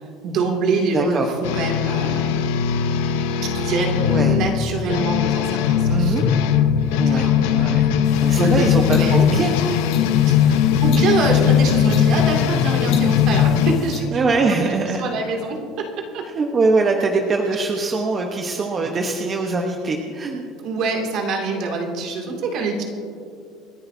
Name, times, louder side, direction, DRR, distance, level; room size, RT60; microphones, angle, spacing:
voice 1, 0.2-2.4 3.1-6.2 7.0-7.4 8.3-9.2 10.2-16.3 18.7-18.9 20.6-22.8, right 3 dB, 55° right, 1 dB, 2.5 m, -25 dB
voice 2, 0.9-1.3 4.0-4.4 5.9-6.3 7.0-7.8 8.2-9.9 14.1-15.0 16.3-20.5, right 3 dB, 30° right, 2 dB, 1.0 m, -22 dB
sound 1, 1.4-13.8, left 8 dB, 90° left, 0.9 m, -19 dB
sound 2, 8.0-14.0, left 6 dB, 60° left, 2.7 m, -38 dB
27.5 x 10.5 x 2.7 m, 2.4 s
cardioid pair, 130°, 0 cm